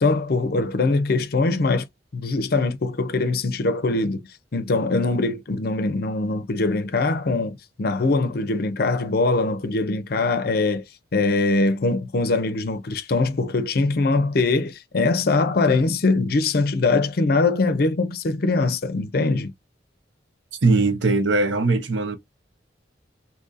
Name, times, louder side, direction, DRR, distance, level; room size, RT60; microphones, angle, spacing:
voice 1, 0.0-1.9 2.1-4.2 4.5-10.8 11.1-19.5, left 3 dB, 55° left, 0.5 m, -22 dB
voice 2, 20.6-22.2, right 3 dB, 85° right, 0.8 m, -20 dB
2.7 x 2.6 x 3.9 m
head